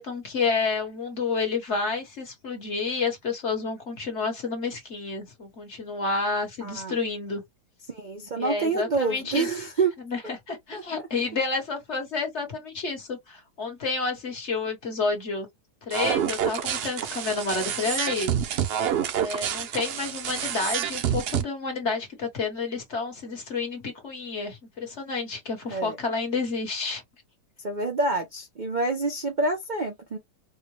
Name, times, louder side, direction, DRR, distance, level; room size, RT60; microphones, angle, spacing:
voice 1, 0.0-7.4 8.4-9.5 10.0-10.2 10.5-15.5 15.9-18.3 19.2-27.0, left 4 dB, 45° left, 1.4 m, -30 dB
voice 2, 6.6-7.0 7.9-9.9 10.7-10.8 25.7-26.0 27.6-30.2, right 3 dB, 45° right, 0.6 m, -27 dB
sound 1, 15.9-21.4, right 9 dB, 85° right, 0.5 m, -28 dB
4.5 x 2.1 x 3.1 m
omnidirectional pair, 1.8 m